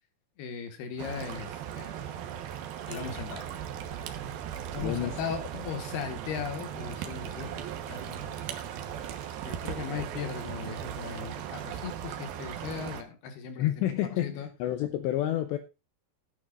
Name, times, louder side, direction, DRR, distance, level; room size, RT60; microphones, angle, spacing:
voice 1, 0.4-2.1 2.9-3.5 4.7-8.6 9.4-13.9 14.2-14.5, left 7 dB, 60° left, 3.1 m, -38 dB
sound 1, 1.0-13.0, right 9 dB, 80° right, 2.1 m, -38 dB
voice 2, 4.8-5.2 13.6-15.6, left 13 dB, 90° left, 2.5 m, -29 dB
16.5 x 9.3 x 2.5 m
omnidirectional pair, 6.0 m